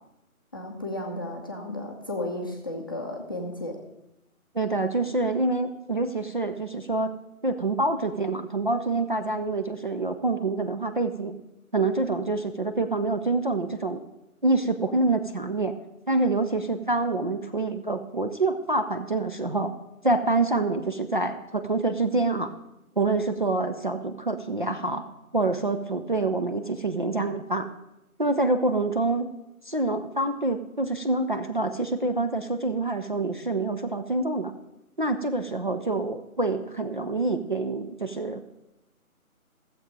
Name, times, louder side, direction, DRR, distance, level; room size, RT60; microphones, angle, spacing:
voice 1, 0.5-3.7, left 1 dB, 15° left, -1 dB, 0.7 m, -33 dB
voice 2, 4.5-7.1 7.4-11.3 11.7-14.0 14.4-15.7 16.1-19.7 20.0-22.5 23.0-25.0 25.3-27.7 28.2-29.3 29.7-34.5 35.0-38.4, right 2 dB, 35° right, 4 dB, 0.5 m, -26 dB
14.5 x 7.4 x 5.2 m, 0.91 s
figure-of-eight pair, 155°, 43 cm